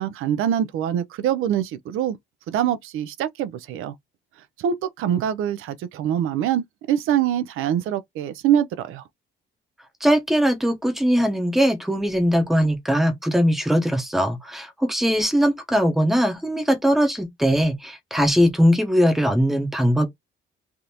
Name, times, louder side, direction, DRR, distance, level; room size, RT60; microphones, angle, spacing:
voice 1, 0.0-2.2 2.5-3.9 4.6-9.0, right 10 dB, 90° right, 0.5 m, -24 dB
voice 2, 10.0-20.1, equal, ahead, 0.7 m, -20 dB
3.4 x 2.5 x 2.7 m
cardioid pair, 180°, 21 cm